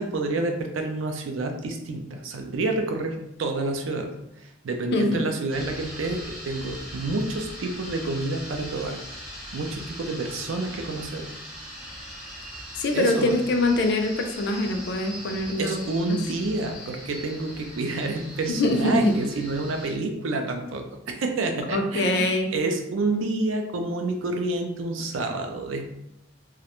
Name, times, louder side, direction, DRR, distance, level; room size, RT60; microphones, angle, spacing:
voice 1, 0.0-4.1 4.4-9.0 9.5-11.3 12.9-13.3 15.6-26.0, right 2 dB, 85° right, 4 dB, 0.4 m, -29 dB
sound 1, 5.5-20.0, equal, 5° right, 0.6 m, -40 dB
voice 2, 12.8-15.8 16.1-16.2 18.5-19.1 21.7-22.5, left 2 dB, 60° left, 4 dB, 0.4 m, -23 dB
2.4 x 2.1 x 2.9 m, 0.83 s
head